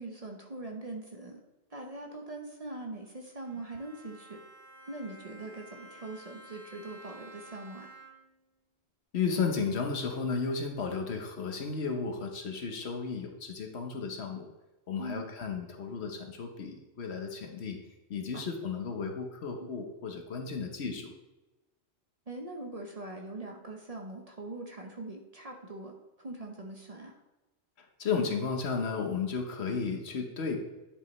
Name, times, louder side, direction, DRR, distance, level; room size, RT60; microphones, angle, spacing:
voice 1, 0.0-1.4 1.7-4.4 4.9-7.9 15.0-15.2 18.3-18.4 19.6-19.7 22.3-27.1, right 2 dB, 35° right, 1 dB, 0.8 m, -42 dB
Bowed string instrument, 3.4-8.4, right 2 dB, 55° right, 1.6 m, -52 dB
voice 2, 9.1-14.5 14.9-17.8 18.1-21.1 28.0-30.6, left 5 dB, 65° left, 4 dB, 1.2 m, -33 dB
10.0 x 5.1 x 3.2 m, 1.0 s
omnidirectional pair, 1.2 m